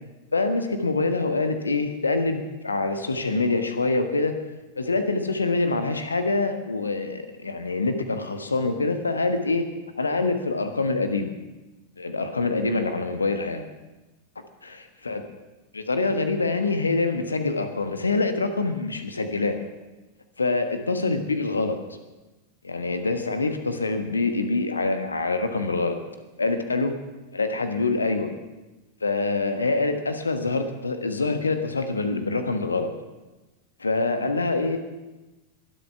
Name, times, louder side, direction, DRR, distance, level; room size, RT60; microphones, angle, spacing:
voice 1, 0.3-4.4 4.7-9.7 10.0-11.3 12.0-13.6 14.6-15.2 15.7-19.6 20.4-21.8 22.6-26.0 26.4-27.0 27.3-28.3 29.0-32.9 33.8-34.8, left 3 dB, 75° left, 8 dB, 1.3 m, -25 dB
22.0 x 8.3 x 5.9 m, 1.1 s
figure-of-eight pair, 90°, 0 cm